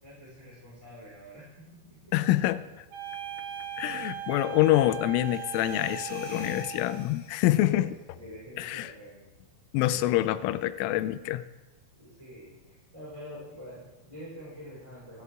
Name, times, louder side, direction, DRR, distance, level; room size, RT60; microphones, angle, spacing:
voice 1, 0.0-2.5 3.3-3.6 7.7-7.9 8.2-9.2 9.9-10.4 11.9-15.2, equal, 5° right, -9 dB, 4.9 m, -46 dB
voice 2, 2.1-2.6 3.8-7.9 8.6-8.9 9.7-11.4, left 15 dB, 90° left, 12 dB, 3.2 m, -26 dB
sound 1, 2.9-7.1, right 11 dB, 80° right, 4.3 m, -39 dB
sound 2, 5.1-7.9, left 5 dB, 55° left, 2.7 m, -48 dB
27.5 x 11.0 x 3.7 m, 1.1 s
omnidirectional pair, 5.6 m